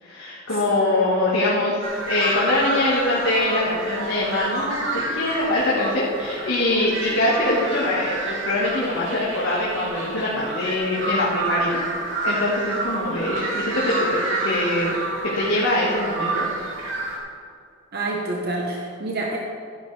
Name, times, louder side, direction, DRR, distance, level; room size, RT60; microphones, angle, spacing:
voice 1, 0.0-11.9 12.2-14.9 15.3-16.5, left 1 dB, 85° left, -7 dB, 1.8 m, -23 dB
sound 1, 1.8-17.2, right 2 dB, 75° right, 2.7 m, -29 dB
voice 2, 17.9-19.4, right 2 dB, 50° right, -1 dB, 1.1 m, -27 dB
12.5 x 10.5 x 3.4 m, 2.3 s
head